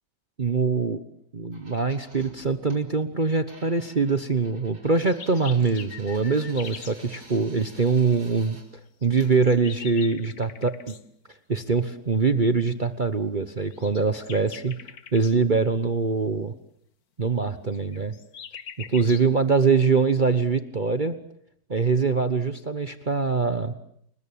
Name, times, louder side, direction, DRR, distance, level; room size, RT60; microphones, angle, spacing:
voice 1, 0.4-1.0 1.3-8.6 9.0-11.0 11.5-14.8 15.1-16.5 17.2-18.1 18.9-21.2 21.7-23.7, right 4 dB, 30° right, 10 dB, 1.1 m, -23 dB
sound 1, 1.5-2.8 3.5-8.6 9.2-9.4, right 2 dB, 75° right, 5.7 m, -51 dB
sound 2, 4.9-7.0 9.0-11.0 13.7-15.3 17.7-19.3, left 7 dB, 60° left, 1.7 m, -42 dB
29.5 x 21.5 x 8.9 m, 0.69 s
omnidirectional pair, 1.9 m